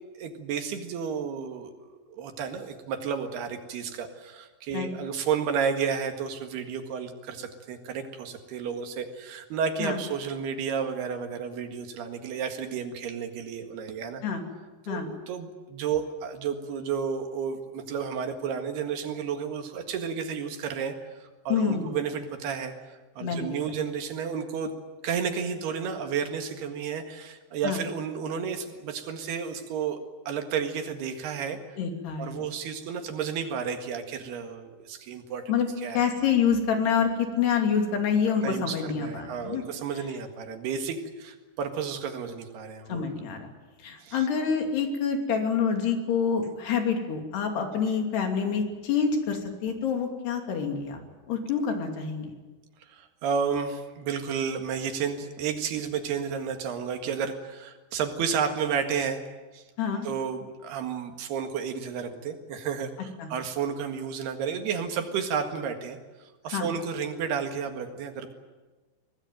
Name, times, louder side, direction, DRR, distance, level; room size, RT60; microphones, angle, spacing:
voice 1, 0.2-14.2 14.9-22.7 23.2-24.7 25.0-30.0 30.3-31.6 32.2-35.4 35.8-36.0 38.4-43.1 44.0-44.2 52.9-59.2 59.5-59.6 60.1-66.0 66.4-68.3, right 6 dB, 75° right, 5 dB, 3.8 m, -32 dB
voice 2, 21.5-21.9 23.2-23.5 27.6-27.8 31.8-32.5 35.5-35.7 35.9-39.6 42.9-43.5 43.8-51.0 51.3-52.3 59.8-60.1 63.2-63.3 66.5-66.7, left 6 dB, 75° left, 3 dB, 4.9 m, -27 dB
24.5 x 18.5 x 9.3 m, 1.3 s
omnidirectional pair, 4.8 m